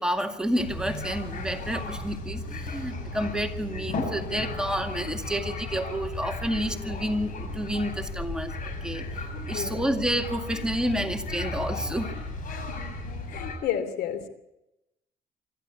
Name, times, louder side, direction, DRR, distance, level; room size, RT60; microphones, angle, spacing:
voice 1, 0.0-12.1, equal, 5° right, 4 dB, 2.0 m, -30 dB
sound 1, 0.6-13.6, left 2 dB, 55° left, 7.5 m, -35 dB
voice 2, 9.5-9.9 12.5-12.9 13.3-14.3, left 9 dB, 75° left, 12 dB, 3.0 m, -32 dB
25.5 x 14.5 x 8.4 m, 0.91 s
cardioid pair, 110°, 17 cm